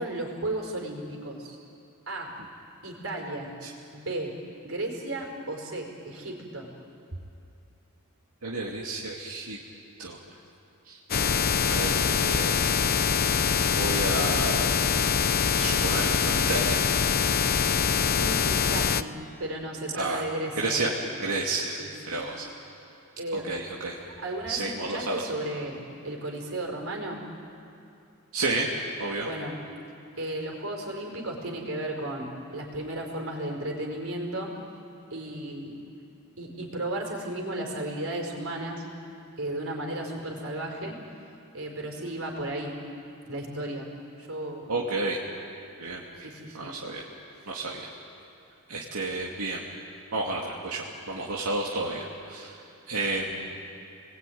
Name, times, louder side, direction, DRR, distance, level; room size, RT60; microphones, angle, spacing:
voice 1, 0.0-1.6 2.1-2.4 2.8-3.5 3.9-4.4 4.6-6.7 18.1-20.8 21.8-22.3 23.2-23.6 24.2-27.2 29.2-29.5 30.2-34.5 35.1-35.8 36.4-38.9 39.4-41.0 41.5-42.8 43.3-43.9 44.2-44.7 46.2-46.7 47.3-47.5, right 1 dB, 65° right, 1 dB, 4.9 m, -34 dB
voice 2, 8.4-9.6 10.0-10.2 10.9-12.8 13.3-14.7 15.6-16.8 19.9-20.2 20.6-20.9 21.2-21.8 22.1-22.5 23.5-24.0 24.5-25.2 28.3-28.7 29.0-29.3 44.7-45.2 45.8-46.0 46.5-47.0 47.5-47.9 48.7-49.6 50.1-52.6 52.9-53.5, right 2 dB, 90° right, -3 dB, 2.5 m, -31 dB
sound 1, 11.1-19.0, left 7 dB, 45° left, 0.6 m, -24 dB
30.0 x 20.5 x 9.4 m, 2.7 s
head